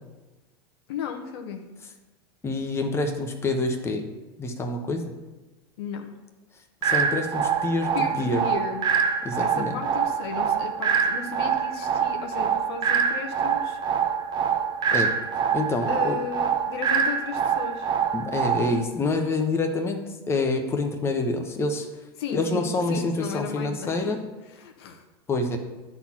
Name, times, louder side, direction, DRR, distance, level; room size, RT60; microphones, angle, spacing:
voice 1, 0.9-1.6 5.8-6.1 7.9-8.8 9.4-13.8 15.9-17.9 22.2-24.2 24.5-25.0, left 6 dB, 75° left, 5 dB, 1.2 m, -34 dB
voice 2, 2.4-4.1 4.4-5.0 6.8-7.9 8.2-8.4 9.2-9.7 14.9-15.1 15.5-16.2 18.1-21.9 22.3-24.2 25.3-25.6, left 2 dB, 20° left, 4 dB, 1.1 m, -27 dB
sound 1, 6.8-18.8, right 7 dB, 35° right, 0.7 m, -25 dB
10.5 x 4.2 x 5.9 m, 1.1 s
hypercardioid pair, 110°, 14 cm